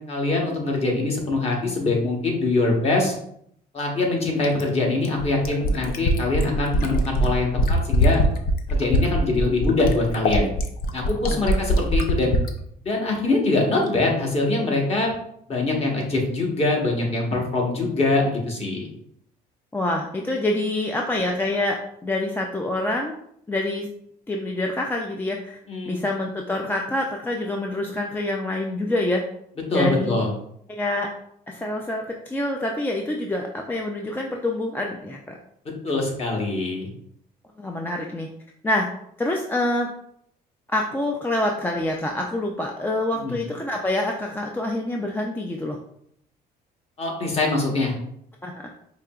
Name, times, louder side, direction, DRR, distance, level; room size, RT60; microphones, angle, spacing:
voice 1, 0.1-3.1 3.7-8.2 8.7-10.5 10.9-12.3 12.8-15.1 15.5-18.9 25.7-26.0 29.7-30.3 35.8-36.9 43.2-43.4 47.0-47.9, left 2 dB, 35° left, -1 dB, 1.2 m, -23 dB
Fill (with liquid), 4.4-12.5 13.9-14.0, equal, 60° left, 0.6 m, -22 dB
voice 2, 19.7-23.1 23.5-23.9 24.3-25.6 25.9-29.2 29.7-30.2 30.8-31.1 31.5-35.4 37.6-38.3 38.6-38.9 39.2-39.9 40.7-45.8 48.4-48.6, left 1 dB, 10° left, 0 dB, 0.4 m, -26 dB
4.7 x 2.8 x 2.3 m, 0.71 s
cardioid pair, 110°, 17 cm